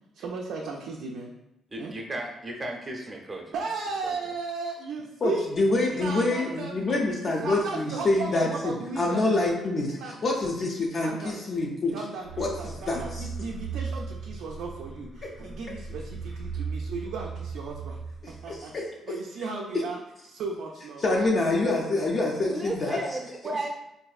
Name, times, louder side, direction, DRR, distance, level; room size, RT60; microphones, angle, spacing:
voice 1, 0.1-1.3 1.8-1.9 3.5-5.5 5.9-6.8 7.2-9.3 9.9-10.2 11.0-11.4 11.9-18.0 18.3-18.7 19.1-21.0 23.4-23.7, right 4 dB, 80° right, -1 dB, 0.4 m, -36 dB
voice 2, 1.7-3.6 4.0-4.1 22.4-23.7, right 1 dB, 25° right, 1 dB, 0.7 m, -34 dB
voice 3, 5.2-12.0 12.4-13.3 18.2-18.9 21.0-23.0, left 2 dB, 50° left, -2 dB, 0.5 m, -26 dB
sound 1, 12.2-18.8, right 5 dB, 85° left, 1.4 m, -37 dB
4.1 x 2.6 x 2.3 m, 0.86 s
cardioid pair, 90°, 0 cm